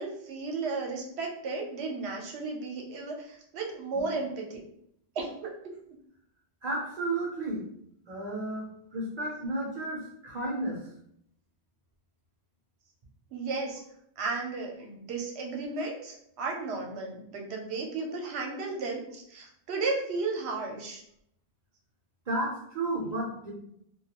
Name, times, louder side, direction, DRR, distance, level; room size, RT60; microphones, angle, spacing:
voice 1, 0.0-4.6 5.2-5.8 13.3-13.8 14.2-21.0, right 3 dB, 75° right, 1 dB, 0.9 m, -34 dB
voice 2, 6.6-7.6 8.1-10.9 22.3-23.5, right 2 dB, 50° right, -4 dB, 0.6 m, -33 dB
2.2 x 2.2 x 2.8 m, 0.71 s
omnidirectional pair, 1.1 m